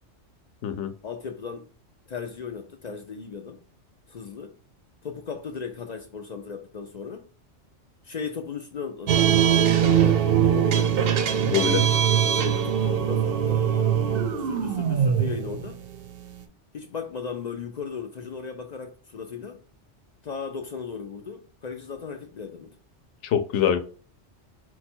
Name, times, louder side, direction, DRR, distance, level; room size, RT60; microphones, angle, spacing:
voice 1, 1.0-1.7 2.1-3.6 4.1-4.6 5.0-7.2 8.0-9.3 9.8-10.9 12.3-14.0 14.4-15.8 16.7-19.6 20.2-22.7, left 6 dB, 55° left, 0.4 m, -36 dB
sound 1, 9.1-16.4, right 9 dB, 60° right, 0.7 m, -22 dB
voice 2, 11.5-11.8 23.2-23.8, left 8 dB, 75° left, 0.9 m, -24 dB
4.6 x 2.3 x 4.3 m
omnidirectional pair, 1.2 m